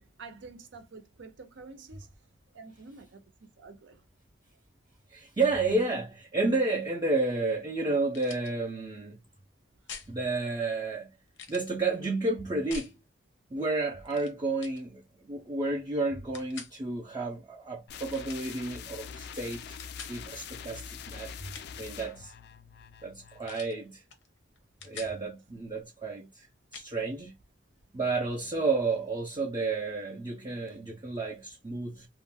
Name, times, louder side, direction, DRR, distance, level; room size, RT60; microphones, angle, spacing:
voice 1, 0.0-2.1 2.5-3.2 3.6-4.0, right 4 dB, 75° right, 0.6 m, -48 dB
voice 2, 5.1-9.2 10.1-11.1 11.5-13.0 13.5-15.0 15.3-19.8 20.1-21.3 21.8-22.3 23.0-24.0 24.8-26.5 26.7-27.3 27.9-32.1, right 3 dB, 25° right, 0.4 m, -31 dB
sound 1, 8.1-8.5 9.9-10.1 11.3-11.7 12.7-12.9 14.1-14.3 14.6-14.8 16.3-16.7 18.1-18.5 19.8-20.2 21.3-21.9 23.5-23.8 24.1-24.3 24.6-25.2 26.7-26.9, left 6 dB, 90° left, 0.7 m, -45 dB
sound 2, 17.9-23.5, left 7 dB, 60° left, 0.3 m, -44 dB
2.4 x 2.1 x 3.4 m
head